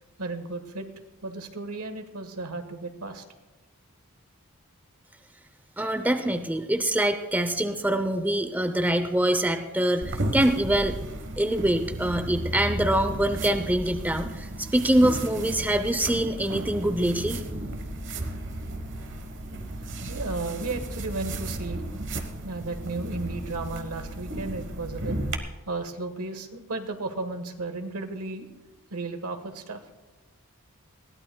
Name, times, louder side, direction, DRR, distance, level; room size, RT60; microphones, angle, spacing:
voice 1, 0.2-0.9 1.2-3.2 19.8-21.8 22.4-25.2 25.7-28.5 28.9-29.8, right 3 dB, 80° right, 7 dB, 1.3 m, -34 dB
voice 2, 5.8-11.0 11.4-17.4, right 1 dB, 10° right, 7 dB, 0.6 m, -24 dB
sound 1, 10.0-25.4, right 1 dB, 55° right, 1.1 m, -34 dB
20.5 x 16.0 x 2.2 m, 1.1 s
head